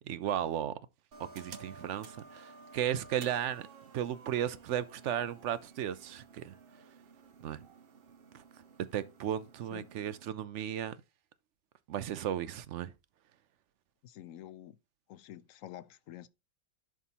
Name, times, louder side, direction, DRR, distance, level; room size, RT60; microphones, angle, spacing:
voice 1, 0.1-0.7 1.2-3.7 3.9-6.5 7.4-7.6 8.3-8.4 8.9-11.0 11.9-12.9, right 10 dB, 70° right, 0.9 m, -35 dB
sound 1, 1.1-10.3, right 4 dB, 50° right, 1.1 m, -54 dB
voice 2, 14.0-14.8 15.1-16.3, left 12 dB, 80° left, 1.0 m, -48 dB
11.0 x 3.7 x 4.1 m
omnidirectional pair, 1.4 m